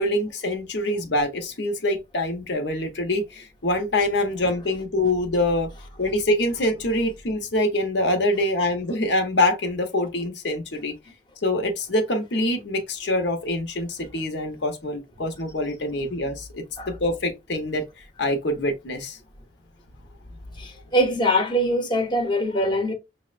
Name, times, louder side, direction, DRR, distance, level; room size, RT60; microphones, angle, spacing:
voice 1, 0.0-5.7 6.0-10.9 11.4-19.2, left 1 dB, 70° left, 0.8 m, -25 dB
voice 2, 20.6-22.9, equal, 25° left, 0.9 m, -23 dB
6.1 x 2.1 x 2.4 m
head